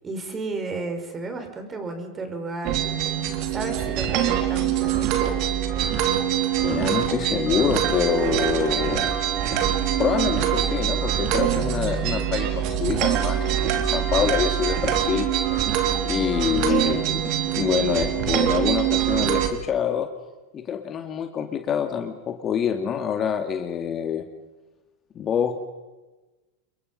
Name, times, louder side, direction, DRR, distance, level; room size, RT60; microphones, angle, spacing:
voice 1, 0.0-2.8 3.5-5.4 16.1-16.6, right 3 dB, 20° right, 6 dB, 5.2 m, -33 dB
sound 1, 2.6-19.5, right 10 dB, 50° right, 3.1 m, -24 dB
voice 2, 6.6-9.1 10.0-15.3 16.0-17.3 17.6-20.1 20.5-24.2 25.2-25.7, left 8 dB, 35° left, 6 dB, 2.2 m, -26 dB
28.0 x 22.5 x 5.5 m, 1.2 s
hypercardioid pair, 95°, 0 cm